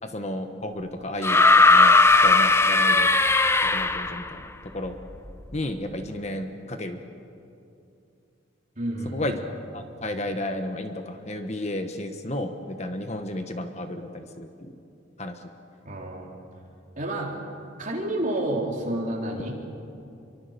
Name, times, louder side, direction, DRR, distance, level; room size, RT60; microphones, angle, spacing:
voice 1, 0.0-3.2 3.6-5.0 5.5-7.0 9.0-9.4 9.7-14.7 15.2-15.4, left 1 dB, 35° left, 6 dB, 1.3 m, -33 dB
sound 1, 1.2-4.3 5.5-5.6, left 3 dB, 15° left, 0.6 m, -17 dB
voice 2, 8.8-9.3 15.8-16.3 17.0-17.3 17.8-19.5, right 1 dB, 40° right, -1 dB, 4.2 m, -29 dB
27.5 x 23.5 x 6.9 m, 2.7 s
head